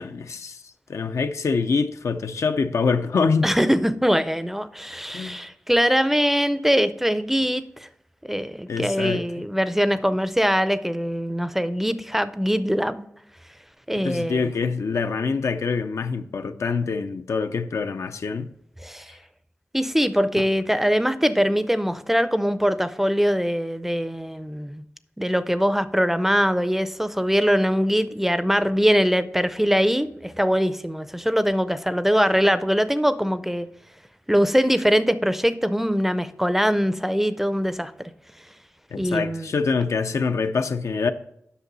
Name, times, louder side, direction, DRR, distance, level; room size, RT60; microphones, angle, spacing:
voice 1, 0.0-3.5 5.1-5.4 8.7-9.2 13.9-18.5 20.4-20.5 38.9-41.1, left 4 dB, 75° left, 0.5 m, -25 dB
voice 2, 3.4-7.6 8.3-13.1 13.9-14.5 18.8-19.1 19.7-24.8 25.2-33.7 34.3-38.1 39.0-39.5, equal, 5° right, 0.4 m, -22 dB
8.2 x 6.0 x 3.9 m
wide cardioid pair, 70°, 5 cm